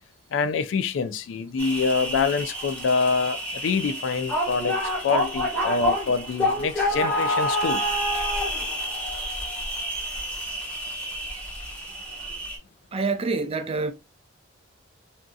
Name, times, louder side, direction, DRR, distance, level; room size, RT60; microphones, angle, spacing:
voice 1, 0.3-4.8 5.0-7.8 12.3-12.4, left 5 dB, 85° left, 0.4 m, -26 dB
sound 1, 1.6-12.6, equal, 5° left, 1.2 m, -28 dB
voice 2, 12.9-13.9, right 3 dB, 30° right, 0.4 m, -26 dB
3.6 x 2.6 x 2.3 m
head